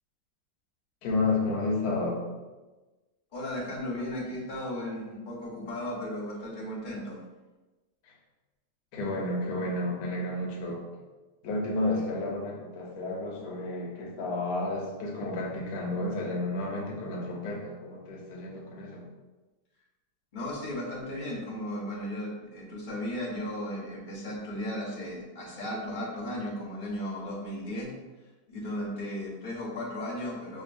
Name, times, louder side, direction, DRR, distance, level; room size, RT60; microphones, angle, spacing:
voice 1, 1.0-2.2 8.1-8.2 8.9-10.8 11.4-19.1, left 2 dB, 65° left, -2 dB, 1.1 m, -31 dB
voice 2, 3.3-7.2 20.3-27.9 28.2-30.6, left 1 dB, 35° left, -5 dB, 0.9 m, -35 dB
5.1 x 2.5 x 2.6 m, 1.2 s
omnidirectional pair, 1.9 m